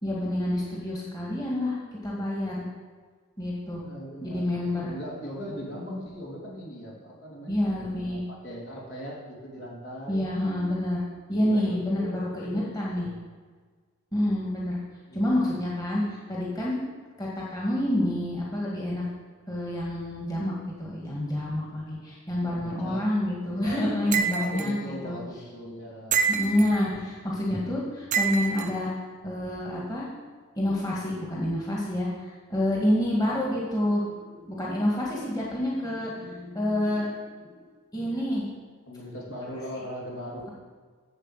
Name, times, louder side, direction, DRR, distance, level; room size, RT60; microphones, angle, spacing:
voice 1, 0.0-1.8 2.0-2.7 3.4-3.8 4.2-5.0 7.5-8.2 10.1-11.0 11.3-13.1 14.1-14.8 15.1-16.8 17.2-19.0 19.5-25.2 26.3-28.9 29.2-30.1 30.6-37.5 37.9-38.4, left 1 dB, 20° left, -5 dB, 1.9 m, -28 dB
voice 2, 3.7-10.3 11.4-12.2 12.5-13.2 15.1-15.2 22.4-23.1 23.4-26.2 38.9-40.5, equal, 65° left, -4 dB, 3.1 m, -39 dB
sound 1, 24.1-24.7 26.1-26.8 28.1-28.7, right 6 dB, 35° right, 0.7 m, -26 dB
8.2 x 7.3 x 7.4 m, 1.5 s
head